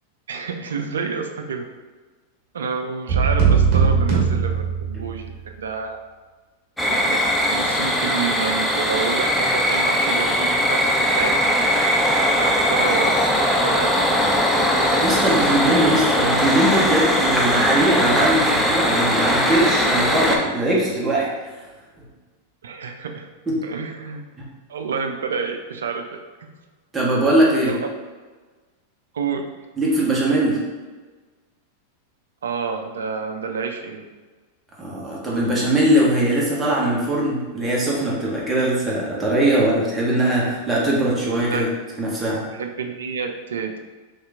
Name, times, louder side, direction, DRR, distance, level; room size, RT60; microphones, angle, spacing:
voice 1, 0.3-1.6 2.5-6.0 6.9-11.4 12.3-14.2 22.6-23.3 23.6-24.2 24.7-26.5 27.7-27.8 29.1-29.5 32.4-34.0 41.5-41.7 42.4-43.8, right 5 dB, 70° right, 5 dB, 0.4 m, -29 dB
sound 1, 3.1-5.3, right 6 dB, 45° right, 1.4 m, -19 dB
sound 2, 6.8-20.4, equal, 5° left, 0.6 m, -20 dB
voice 2, 15.0-21.3 23.5-23.6 26.9-27.8 29.8-30.6 34.8-41.7 42.0-42.4, right 1 dB, 15° right, -5 dB, 1.2 m, -20 dB
3.3 x 2.9 x 3.5 m, 1.3 s
figure-of-eight pair, 90°, 0 cm